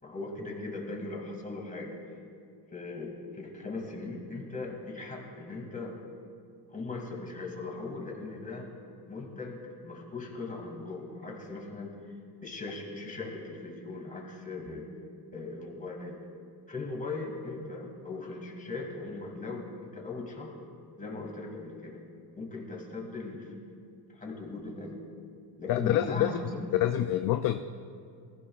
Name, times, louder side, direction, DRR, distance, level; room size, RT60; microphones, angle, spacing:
voice 1, 0.0-2.0 2.7-6.0 6.7-8.7 9.1-12.0 12.4-14.9 15.3-16.2 16.7-20.5 21.0-22.0 22.3-23.5 24.1-25.0 25.6-26.8, left 3 dB, 20° left, 0 dB, 2.4 m, -39 dB
voice 2, 25.7-26.4 26.8-27.6, left 12 dB, 50° left, 8 dB, 0.5 m, -26 dB
19.5 x 15.5 x 2.4 m, 2.4 s
cardioid pair, 120°, 42 cm